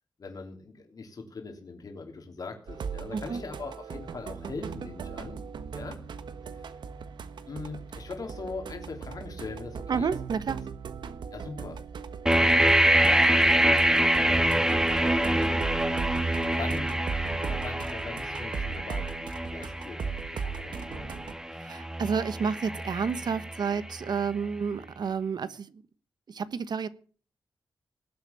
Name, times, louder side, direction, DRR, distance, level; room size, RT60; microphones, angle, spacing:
voice 1, 0.2-5.4 5.7-6.0 6.5-6.6 7.5-10.1 11.3-11.8 12.2-15.6 16.5-21.3, left 4 dB, 55° left, 2 dB, 3.3 m, -41 dB
sound 1, 2.7-21.3, right 6 dB, 85° right, 1.4 m, -38 dB
voice 2, 9.9-10.6 21.6-25.8 26.3-26.9, right 6 dB, 70° right, 14 dB, 1.3 m, -30 dB
sound 2, 12.3-24.1, right 1 dB, 10° right, 1.7 m, -26 dB
19.0 x 8.5 x 7.0 m, 0.42 s
wide cardioid pair, 110°, 8 cm